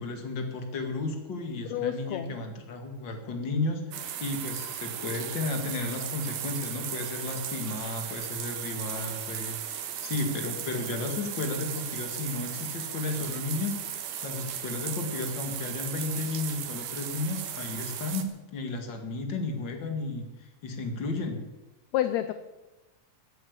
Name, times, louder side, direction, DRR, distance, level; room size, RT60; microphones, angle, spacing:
voice 1, 0.0-21.4, left 3 dB, 40° left, 4 dB, 2.3 m, -33 dB
voice 2, 1.7-2.4 21.9-22.3, left 11 dB, 75° left, 11 dB, 1.7 m, -29 dB
sound 1, 3.9-18.2, right 9 dB, 85° right, 2.9 m, -36 dB
15.0 x 9.2 x 8.3 m, 1.0 s
omnidirectional pair, 3.7 m